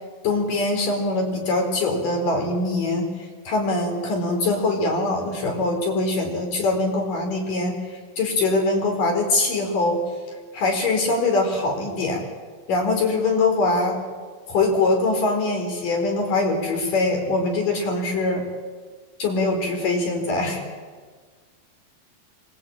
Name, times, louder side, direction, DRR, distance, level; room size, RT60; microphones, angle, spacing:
voice 1, 0.2-3.1 3.5-7.8 8.2-10.0 10.5-12.2 12.7-14.0 14.5-18.4 19.2-20.6, left 2 dB, 60° left, 3 dB, 5.7 m, -23 dB
25.0 x 20.5 x 8.8 m, 1.5 s
omnidirectional pair, 4.3 m